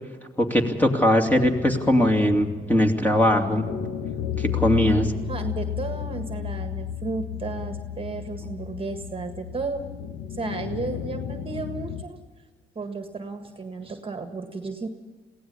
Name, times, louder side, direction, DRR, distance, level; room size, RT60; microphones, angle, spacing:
voice 1, 0.4-3.6 4.4-5.1, left 1 dB, 10° left, 3 dB, 2.5 m, -20 dB
sound 1, 1.3-12.0, left 9 dB, 85° left, 1.3 m, -33 dB
voice 2, 5.3-9.9 10.3-12.2 12.7-14.9, right 3 dB, 25° right, 7 dB, 1.7 m, -33 dB
22.5 x 16.5 x 7.0 m, 1.4 s
cardioid pair, 90°, 20 cm